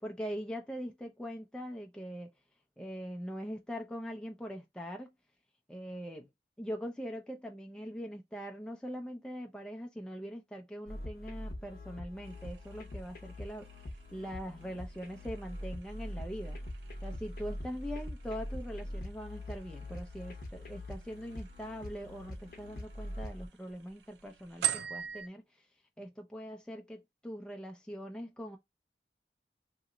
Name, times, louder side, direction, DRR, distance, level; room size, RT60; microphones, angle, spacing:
voice 1, 0.0-2.3 2.8-5.1 5.7-6.3 6.6-13.7 14.1-16.6 17.0-25.4 26.0-28.6, equal, 5° left, 0.3 m, -42 dB
sound 1, 10.9-23.5, left 1 dB, 50° left, 0.7 m, -43 dB
sound 2, 12.2-25.3, right 11 dB, 80° right, 0.4 m, -44 dB
2.9 x 2.0 x 3.6 m
head